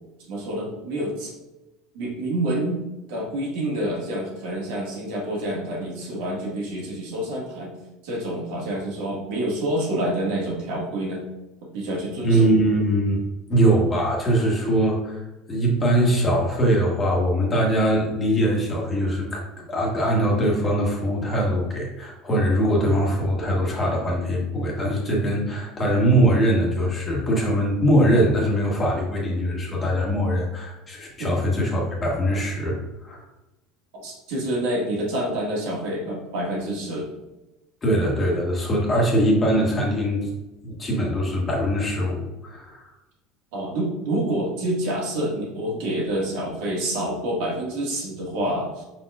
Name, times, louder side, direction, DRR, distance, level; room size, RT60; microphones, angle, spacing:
voice 1, 0.2-1.3 1.9-2.8 3.1-7.7 8.0-11.2 11.7-12.5 31.2-31.3 34.0-37.1 43.5-48.8, right 1 dB, 75° right, -3 dB, 1.6 m, -27 dB
voice 2, 12.2-13.2 13.5-15.2 15.5-33.2 37.8-40.3 40.6-42.8, right 1 dB, 20° left, -2 dB, 1.2 m, -22 dB
5.3 x 4.2 x 2.4 m, 1.0 s
supercardioid pair, 140°, 0 cm